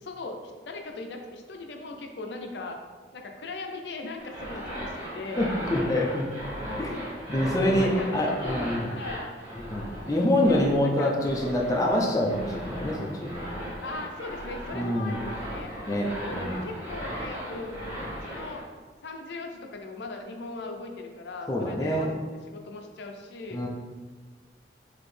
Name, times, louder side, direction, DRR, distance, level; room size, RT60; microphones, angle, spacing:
voice 1, 0.0-2.8 3.1-5.6 7.6-9.3 10.4-11.1 13.8-15.7 16.2-18.6 19.0-22.1 22.5-23.7, left 3 dB, 75° left, 3 dB, 0.5 m, -39 dB
sound 1, 4.2-18.6, equal, 35° right, 1.4 m, -37 dB
voice 2, 5.4-6.3 6.8-7.0 7.3-8.9 9.5-13.5 14.7-15.2 15.9-16.6 21.5-22.1 23.5-23.7, left 1 dB, 20° left, -2 dB, 0.4 m, -26 dB
4.1 x 2.8 x 3.2 m, 1.4 s
head